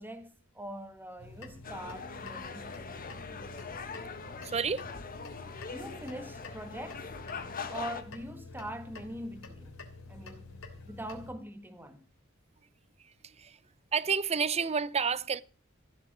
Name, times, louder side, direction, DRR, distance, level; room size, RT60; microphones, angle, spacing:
voice 1, 0.0-2.7 3.3-3.5 5.4-7.1 7.7-10.6 10.8-12.1, right 1 dB, 10° right, 1.8 m, -43 dB
sound 1, 1.2-11.3, left 3 dB, 70° left, 3.3 m, -48 dB
sound 2, 1.6-8.0, left 5 dB, 45° left, 1.7 m, -42 dB
voice 2, 4.4-4.9 13.0-13.6 13.9-15.4, right 6 dB, 30° right, 0.6 m, -30 dB
15.0 x 8.2 x 7.5 m
head